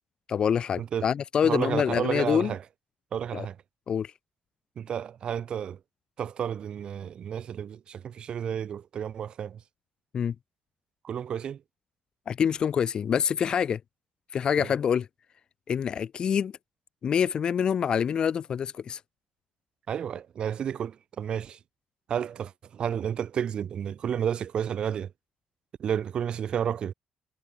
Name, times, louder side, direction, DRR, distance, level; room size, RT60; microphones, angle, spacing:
voice 1, 0.3-2.5 3.3-3.5 3.9-4.1 10.1-10.4 12.3-13.8 14.3-15.1 15.7-16.6 17.0-19.0, left 7 dB, 40° left, 3.5 m, -26 dB
voice 2, 1.4-2.6 3.1-3.6 4.8-5.8 6.2-9.6 11.0-11.6 14.6-14.7 19.9-21.6 22.1-25.1 25.8-26.9, right 8 dB, 40° right, 2.2 m, -31 dB
cardioid pair, 180°, 2 cm